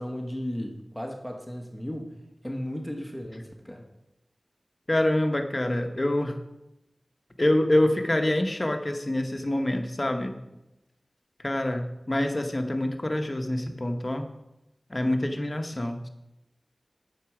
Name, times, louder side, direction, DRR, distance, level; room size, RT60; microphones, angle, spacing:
voice 1, 0.0-2.1 2.4-3.8, equal, 5° left, 2 dB, 1.2 m, -35 dB
voice 2, 4.9-6.4 7.4-10.3 11.4-14.3 14.9-16.1, left 1 dB, 35° left, 5 dB, 1.0 m, -26 dB
9.3 x 6.9 x 4.9 m, 0.91 s
wide cardioid pair, 60°, 0 cm